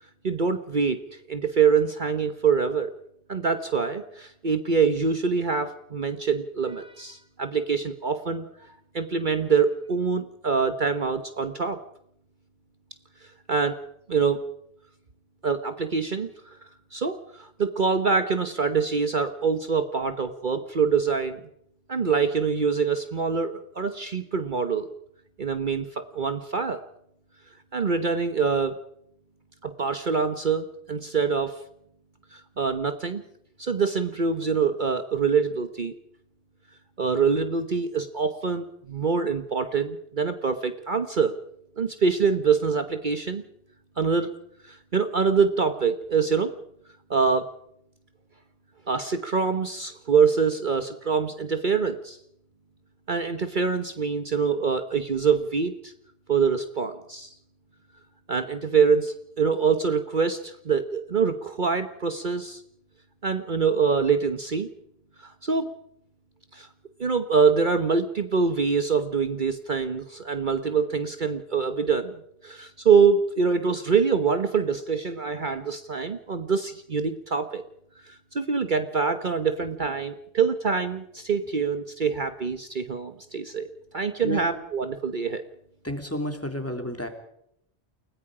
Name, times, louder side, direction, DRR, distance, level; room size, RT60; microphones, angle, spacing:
voice 1, 0.2-2.9 3.3-11.8 13.2-13.8 14.1-14.4 15.4-16.6 16.9-21.4 21.9-24.9 25.4-26.8 27.7-28.7 29.6-31.6 32.3-33.2 33.6-35.9 37.0-41.4 41.8-43.4 44.0-44.3 44.6-46.5 47.1-47.5 48.9-52.2 53.1-55.9 56.3-57.3 58.3-62.6 63.2-64.7 65.2-65.7 66.5-66.7 67.0-77.6 78.0-85.4, right 5 dB, 45° right, 8 dB, 1.2 m, -25 dB
voice 2, 85.8-87.1, left 1 dB, 10° left, 5 dB, 2.9 m, -31 dB
30.0 x 18.5 x 5.0 m, 0.72 s
omnidirectional pair, 1.1 m